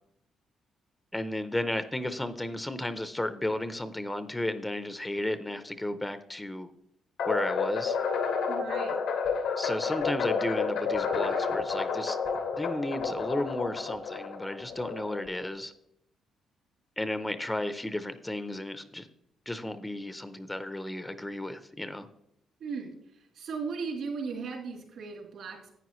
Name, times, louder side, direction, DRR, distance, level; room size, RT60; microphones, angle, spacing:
voice 1, 1.1-6.7 7.3-8.0 9.6-12.2 12.6-15.7 17.0-19.1 19.5-22.1, left 1 dB, 10° left, 11 dB, 0.6 m, -33 dB
sound 1, 7.2-15.5, left 5 dB, 85° left, 1.5 m, -30 dB
voice 2, 8.5-8.9 22.6-25.7, right 5 dB, 70° right, 0 dB, 3.1 m, -37 dB
11.0 x 8.8 x 3.1 m, 0.76 s
cardioid pair, 90°, 0 cm